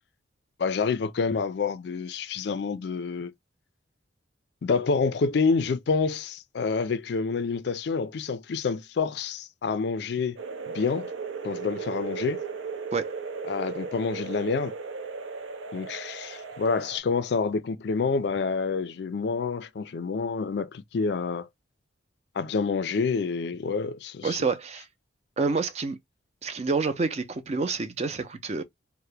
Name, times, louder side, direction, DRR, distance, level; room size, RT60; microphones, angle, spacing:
voice 1, 0.6-3.3 4.6-10.4 10.7-11.1 11.4-12.4 13.5-14.8 15.7-21.5 22.4-24.5, left 4 dB, 60° left, 0.4 m, -28 dB
sound 1, 10.4-17.0, right 5 dB, 85° right, 0.5 m, -36 dB
voice 2, 24.2-24.9 25.4-26.0 26.4-28.6, right 4 dB, 35° right, 0.4 m, -28 dB
2.8 x 2.1 x 3.2 m
head